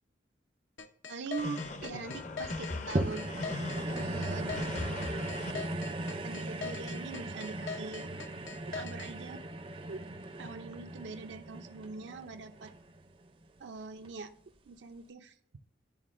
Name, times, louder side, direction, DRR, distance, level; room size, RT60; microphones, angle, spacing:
sound 1, 0.8-9.1, left 5 dB, 90° left, 0.7 m, -41 dB
voice 1, 1.1-3.4 3.8-4.6 6.2-8.1 8.7-9.4 9.9-10.0 10.4-12.7 13.6-14.3 14.7-15.3, right 4 dB, 85° right, 6 dB, 0.5 m, -42 dB
sound 2, 1.4-5.5, left 2 dB, 40° left, 0.5 m, -39 dB
sound 3, 2.9-13.4 14.0-14.1, right 2 dB, 30° right, 0.4 m, -38 dB
10.5 x 4.1 x 2.5 m, 0.65 s
head